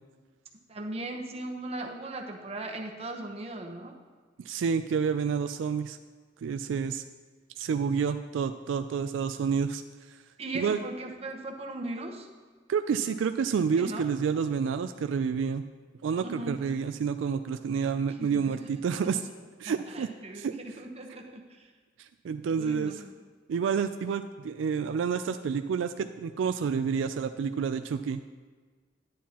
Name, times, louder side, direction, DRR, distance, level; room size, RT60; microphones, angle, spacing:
voice 1, 0.7-3.9 10.4-12.3 13.8-14.1 16.2-16.6 18.2-18.7 19.6-21.7 22.6-23.1, right 2 dB, 35° right, 2 dB, 0.9 m, -38 dB
voice 2, 4.5-6.0 6.4-7.0 7.6-9.8 10.5-10.8 12.7-15.6 16.0-19.2 19.6-20.1 20.3-20.5 22.0-23.0 23.5-28.2, right 6 dB, 80° right, 9 dB, 0.3 m, -29 dB
10.0 x 9.3 x 2.9 m, 1.5 s
head